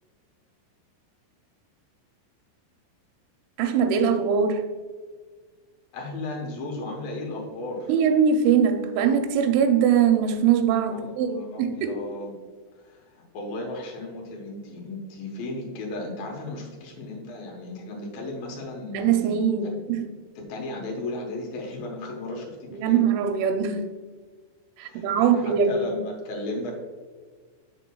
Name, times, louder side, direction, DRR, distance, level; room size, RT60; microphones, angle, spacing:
voice 1, 3.6-4.7 7.9-11.9 18.9-20.1 22.7-23.8 24.8-25.8, right 7 dB, 80° right, 6 dB, 2.9 m, -22 dB
voice 2, 5.9-7.9 10.9-12.4 12.8-19.5 20.4-23.1 24.8-26.8, left 2 dB, 80° left, 0 dB, 2.1 m, -35 dB
8.1 x 6.5 x 2.3 m, 1.5 s
omnidirectional pair, 5.8 m